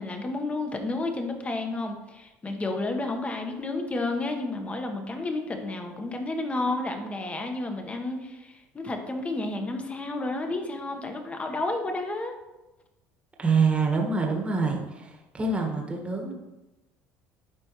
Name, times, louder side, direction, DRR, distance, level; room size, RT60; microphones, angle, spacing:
voice 1, 0.0-12.3, left 2 dB, 25° left, 4 dB, 1.2 m, -31 dB
voice 2, 13.4-16.3, right 4 dB, 20° right, 0 dB, 1.6 m, -26 dB
11.0 x 4.4 x 3.1 m, 1.0 s
supercardioid pair, 85°, 5 cm